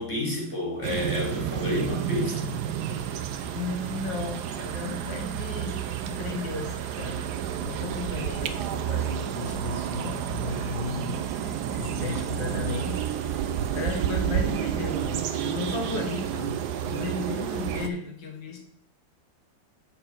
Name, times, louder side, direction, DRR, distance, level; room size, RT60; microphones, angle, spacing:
voice 1, 0.0-2.5, left 2 dB, 15° left, -3 dB, 2.6 m, -30 dB
sound 1, 0.8-17.9, right 9 dB, 70° right, 1.1 m, -30 dB
voice 2, 3.5-7.3 7.6-16.6 16.8-18.6, left 3 dB, 70° left, 2 dB, 2.1 m, -35 dB
7.7 x 4.5 x 6.0 m, 0.64 s
omnidirectional pair, 2.1 m